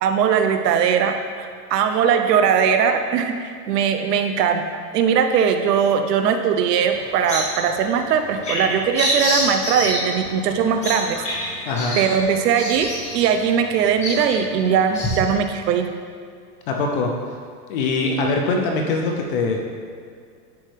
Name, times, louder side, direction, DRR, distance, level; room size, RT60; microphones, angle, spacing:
voice 1, 0.0-4.6 4.9-11.7 12.0-15.9, right 7 dB, 75° right, 7 dB, 0.8 m, -20 dB
Bird vocalization bird call bird song, 6.8-15.1, left 1 dB, 15° left, 1.4 m, -28 dB
voice 2, 11.7-12.0 16.7-17.1 17.7-19.6, left 3 dB, 35° left, 1 dB, 0.5 m, -22 dB
10.5 x 4.3 x 3.3 m, 2.2 s
supercardioid pair, 160°, 48 cm